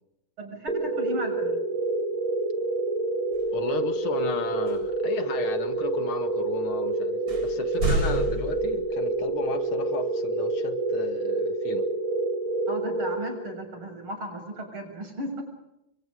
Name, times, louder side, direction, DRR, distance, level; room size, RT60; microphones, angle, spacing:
voice 1, 0.4-1.6 12.7-15.4, right 1 dB, 85° right, 4 dB, 7.5 m, -35 dB
sound 1, 0.7-13.8, right 2 dB, 20° right, 4.9 m, -28 dB
sound 2, 3.3-3.6 4.7-5.1 5.7-5.8 6.7-6.8 7.3-9.2, right 2 dB, 45° right, 8.2 m, -30 dB
voice 2, 3.5-11.9, left 6 dB, 90° left, 9 dB, 2.7 m, -35 dB
29.5 x 23.5 x 5.1 m, 0.82 s
omnidirectional pair, 2.3 m